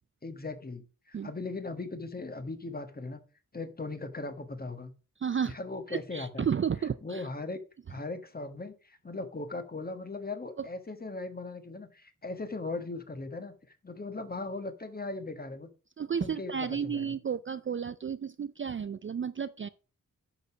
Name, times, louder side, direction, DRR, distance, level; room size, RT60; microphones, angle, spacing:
voice 1, 0.2-3.2 3.5-4.9 5.4-6.5 7.0-7.6 7.9-15.7 16.2-17.2, left 3 dB, 30° left, 1.5 m, -38 dB
voice 2, 5.2-5.6 5.9-7.2 16.0-19.7, right 7 dB, 40° right, 0.4 m, -32 dB
10.5 x 6.6 x 5.0 m
wide cardioid pair, 140°, 33 cm